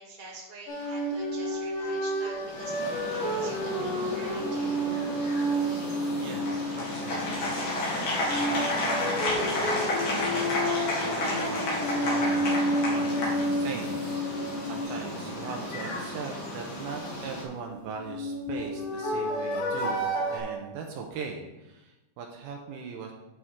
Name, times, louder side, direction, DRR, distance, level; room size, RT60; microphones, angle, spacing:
voice 1, 0.0-4.8, right 2 dB, 20° right, -5 dB, 1.2 m, -46 dB
sound 1, 0.7-7.7 8.2-16.1 17.8-20.4, equal, 85° left, 4.5 m, -30 dB
sound 2, 2.3-17.4, left 1 dB, 40° left, 3.0 m, -37 dB
voice 2, 6.2-7.7 8.3-20.0 20.3-23.1, right 5 dB, 75° right, 2 dB, 2.5 m, -40 dB
Applause, 6.5-14.0, left 1 dB, 55° left, 3.6 m, -30 dB
11.0 x 6.0 x 3.7 m, 0.99 s
omnidirectional pair, 4.8 m